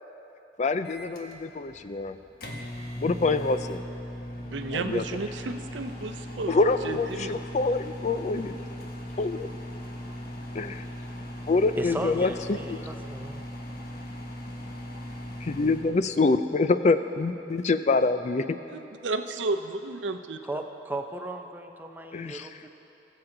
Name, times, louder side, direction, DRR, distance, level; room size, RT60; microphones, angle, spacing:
voice 1, 0.6-2.2 3.0-3.8 4.7-5.0 6.5-8.5 9.2-9.5 10.6-10.7 11.5-12.8 15.4-18.5 22.1-22.5, left 3 dB, 40° left, 11 dB, 0.4 m, -25 dB
Microwave oven, 0.8-15.9, equal, 55° left, 1.3 m, -39 dB
voice 2, 4.4-7.4 18.7-20.4, right 3 dB, 85° right, 7 dB, 0.6 m, -33 dB
voice 3, 11.8-13.4 20.4-22.7, right 1 dB, 10° right, 4 dB, 0.6 m, -36 dB
21.0 x 7.5 x 3.9 m, 3.0 s
head